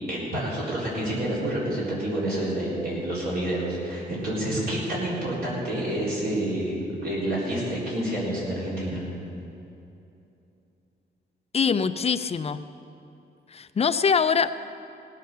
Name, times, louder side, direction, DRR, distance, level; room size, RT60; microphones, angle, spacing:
voice 1, 0.1-9.0, right 1 dB, 60° right, -8 dB, 4.2 m, -28 dB
voice 2, 11.5-12.7 13.5-14.5, left 6 dB, 35° left, 11 dB, 0.5 m, -23 dB
18.5 x 8.2 x 6.8 m, 2.8 s
wide cardioid pair, 130°, 18 cm